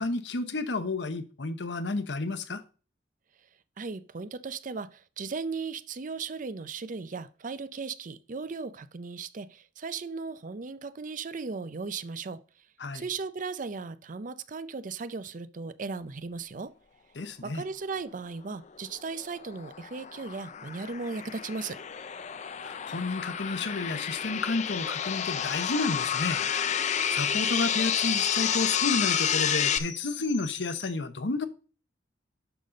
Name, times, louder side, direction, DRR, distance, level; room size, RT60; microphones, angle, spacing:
voice 1, 0.0-2.6 12.8-13.0 17.2-17.6 22.6-26.4 27.1-31.5, left 3 dB, 70° left, 0.9 m, -31 dB
voice 2, 3.8-12.4 12.9-16.7 17.4-21.8, right 4 dB, 45° right, 0.5 m, -37 dB
sound 1, 19.0-29.8, left 8 dB, 40° left, 0.5 m, -30 dB
sound 2, 21.2-21.3 21.5-21.6 21.9-30.9, left 7 dB, 85° left, 1.6 m, -45 dB
11.5 x 4.2 x 5.1 m
head